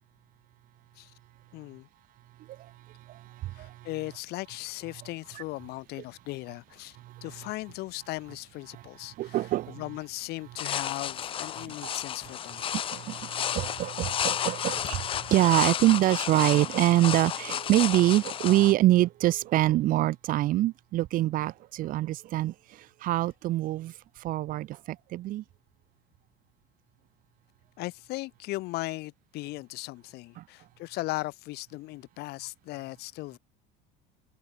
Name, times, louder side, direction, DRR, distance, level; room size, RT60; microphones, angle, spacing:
voice 1, 1.5-1.9 3.5-12.7 27.8-33.4, left 20 dB, 50° left, 5.7 m, -38 dB
voice 2, 9.2-9.7 12.9-13.2 13.5-15.0 15.3-22.5 23.0-23.9 24.2-25.4 30.4-30.5, right 15 dB, 40° right, 4.1 m, -24 dB
sound 1, 10.6-18.7, left 9 dB, 25° left, 1.3 m, -32 dB
cardioid pair, 175°, 21 cm